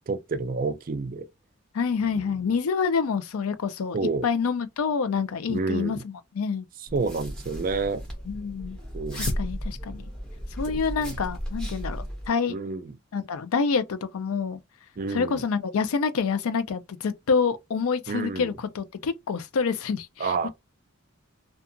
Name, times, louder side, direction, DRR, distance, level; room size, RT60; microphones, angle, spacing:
voice 1, 0.1-1.3 2.1-2.2 3.9-4.3 5.5-6.0 6.9-8.0 8.9-9.3 10.7-11.2 12.5-12.9 15.0-15.4 18.1-18.5 20.2-20.5, right 4 dB, 40° right, 0.4 m, -29 dB
voice 2, 1.7-4.0 4.2-6.6 8.3-8.8 9.1-10.1 10.5-12.6 13.1-14.6 15.1-20.5, left 5 dB, 85° left, 0.4 m, -27 dB
sound 1, 6.9-12.3, equal, 5° left, 0.7 m, -34 dB
2.7 x 2.3 x 2.5 m
head